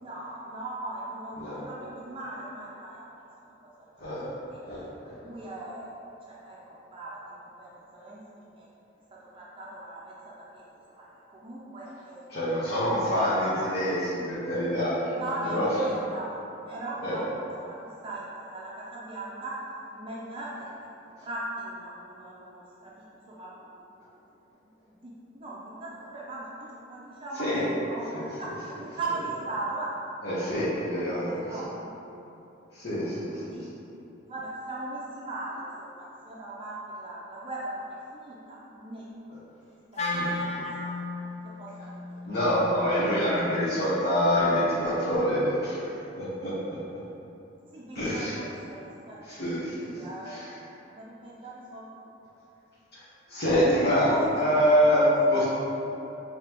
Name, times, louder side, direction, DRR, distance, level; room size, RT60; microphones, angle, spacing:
voice 1, 0.0-3.1 3.6-4.1 4.5-4.6 5.0-5.9 6.3-7.2 7.6-8.7 9.3-11.1 11.3-12.8 13.5-13.8 15.1-16.4 16.6-17.8 18.0-19.5 19.9-20.6 21.0-24.0 24.3-24.4 24.9-28.1 28.4-29.9 30.4-30.5 31.0-31.9 33.3-33.7 34.3-39.0 39.9-41.0 41.4-42.3 47.7-49.2 49.8-50.4 50.9-51.8 53.7-54.7, right 2 dB, 25° right, -6 dB, 0.5 m, -39 dB
voice 2, 12.3-15.1 15.4-15.7 17.0-17.2 27.4-27.6 28.1-28.2 30.2-31.3 32.7-33.6 40.1-40.6 42.2-46.8 47.9-48.3 49.3-49.9 50.3-50.4 52.9-53.0 53.3-55.4, equal, 55° left, -13 dB, 1.0 m, -26 dB
Wind instrument woodwind instrument, 39.9-44.2, left 2 dB, 35° left, 0.5 m, -35 dB
5.1 x 2.9 x 2.9 m, 3.0 s
head